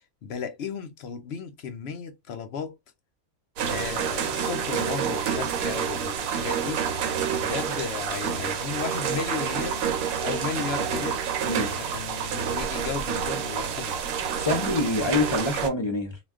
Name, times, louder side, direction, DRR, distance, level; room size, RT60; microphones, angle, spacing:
voice 1, 0.2-2.8 3.7-6.9 7.3-9.8 10.2-11.2 11.8-14.0, left 6 dB, 60° left, 0.7 m, -34 dB
sound 1, 3.6-15.7, right 7 dB, 80° right, 1.1 m, -28 dB
voice 2, 14.4-16.2, left 2 dB, 40° left, 0.4 m, -26 dB
2.3 x 2.2 x 3.5 m
omnidirectional pair, 1.4 m